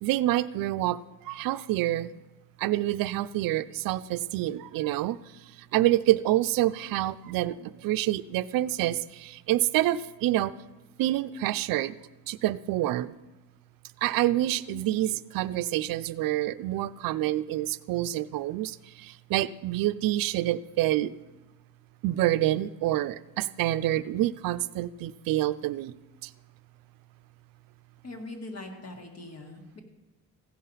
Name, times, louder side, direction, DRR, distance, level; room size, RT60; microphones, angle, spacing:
voice 1, 0.0-2.1 2.6-5.2 5.7-10.5 11.0-11.9 12.3-13.1 14.0-21.1 22.0-25.9 26.2-26.3, right 14 dB, 75° right, 14 dB, 0.5 m, -27 dB
voice 2, 28.0-29.8, left 2 dB, 45° left, 3 dB, 1.9 m, -41 dB
15.5 x 5.6 x 5.5 m, 1.1 s
cardioid pair, 110°, 34 cm